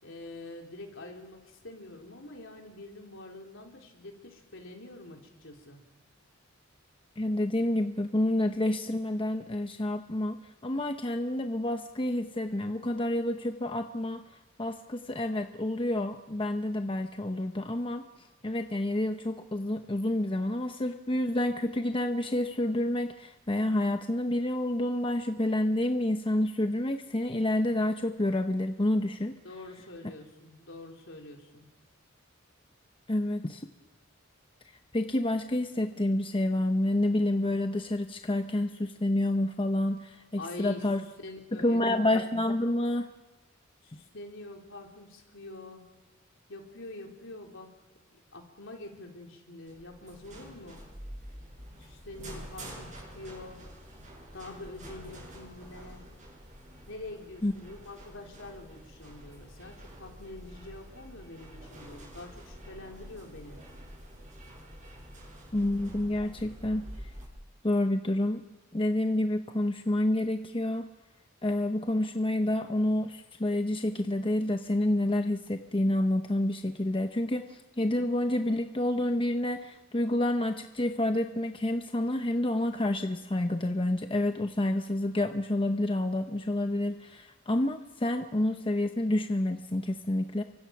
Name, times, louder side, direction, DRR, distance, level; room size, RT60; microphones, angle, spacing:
voice 1, 0.0-5.8 29.4-31.7 40.4-40.8 41.2-42.0 43.8-45.8 46.5-47.7 48.3-50.8 51.8-53.6 54.3-56.1 56.9-63.6, left 2 dB, 65° left, 1 dB, 4.1 m, -45 dB
voice 2, 7.2-10.4 10.6-14.2 14.6-18.0 18.4-29.3 33.1-33.6 34.9-41.0 41.6-43.1 57.4-57.5 65.5-66.8 67.6-68.4 68.7-70.9 71.4-90.4, left 1 dB, 25° left, 6 dB, 0.9 m, -28 dB
sound 1, 49.7-67.2, equal, 35° right, 7.4 m, -47 dB
30.0 x 24.0 x 6.1 m, 1.1 s
head